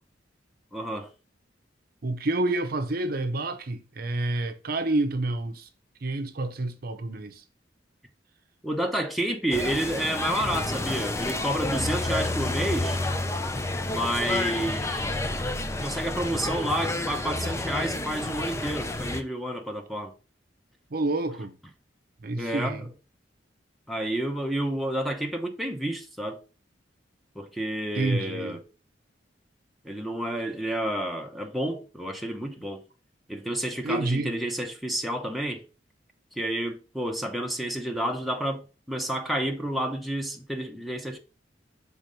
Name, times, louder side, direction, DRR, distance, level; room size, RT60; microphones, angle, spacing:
voice 1, 0.7-1.1 8.6-13.0 13.9-15.1 15.8-20.1 22.4-22.9 23.9-26.4 27.3-28.6 29.8-32.8 33.3-35.6 36.4-41.2, right 1 dB, ahead, 0.9 m, -30 dB
voice 2, 2.0-5.7 6.0-7.4 15.2-15.8 20.9-21.6 22.2-22.9 28.0-28.6 33.8-34.3, right 2 dB, 55° right, 0.7 m, -29 dB
sound 1, 9.5-19.2, left 2 dB, 15° left, 0.5 m, -30 dB
5.9 x 3.7 x 5.2 m
head